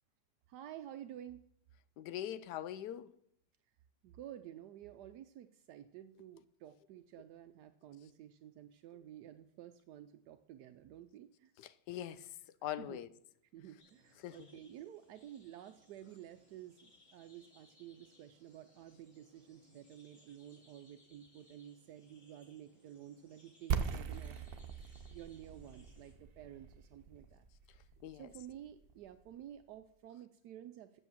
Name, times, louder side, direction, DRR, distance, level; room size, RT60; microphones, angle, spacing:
voice 1, 0.5-1.4 4.0-11.5 12.8-13.0 13.5-24.4 25.1-27.4 28.1-31.0, right 11 dB, 80° right, 1.1 m, -52 dB
voice 2, 2.0-3.1 11.6-12.4 12.6-13.1 14.2-14.5 28.0-28.3, left 11 dB, 80° left, 1.2 m, -42 dB
sound 1, 13.8-26.1, left 2 dB, 45° left, 5.3 m, -67 dB
sound 2, 23.7-29.4, right 6 dB, 65° right, 0.5 m, -41 dB
8.1 x 7.2 x 7.3 m
omnidirectional pair, 1.8 m